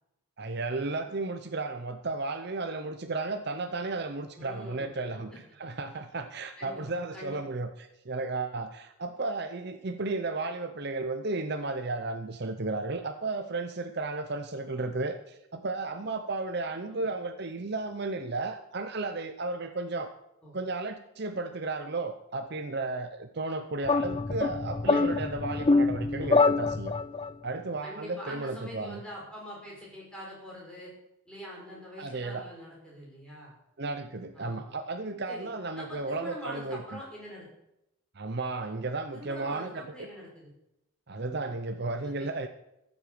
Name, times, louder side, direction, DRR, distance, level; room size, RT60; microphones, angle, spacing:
voice 1, 0.4-5.3 5.6-20.1 20.5-26.9 27.4-29.0 32.0-32.4 33.8-37.0 38.1-40.1 41.1-42.5, right 3 dB, 50° right, 8 dB, 0.7 m, -34 dB
voice 2, 4.3-5.2 6.6-7.4 14.7-14.9 16.9-17.0 20.4-20.6 27.8-30.9 31.3-33.5 34.3-34.8 35.3-35.5 35.8-37.5 39.1-40.5 42.0-42.3, equal, 5° left, -5 dB, 5.6 m, -44 dB
sound 1, 23.8-27.3, left 3 dB, 25° left, 0.3 m, -25 dB
14.0 x 8.0 x 6.9 m, 0.86 s
head